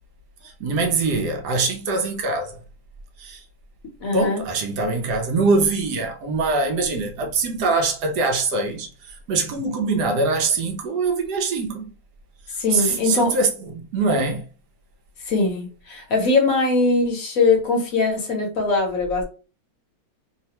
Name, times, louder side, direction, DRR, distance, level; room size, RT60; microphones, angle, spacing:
voice 1, 0.4-2.6 3.2-3.4 4.1-11.9 12.7-14.4, right 3 dB, 75° right, 1.2 m, -23 dB
voice 2, 4.0-4.4 12.6-13.3 15.2-19.2, left 3 dB, 60° left, 1.2 m, -21 dB
3.2 x 2.1 x 2.8 m
omnidirectional pair, 1.9 m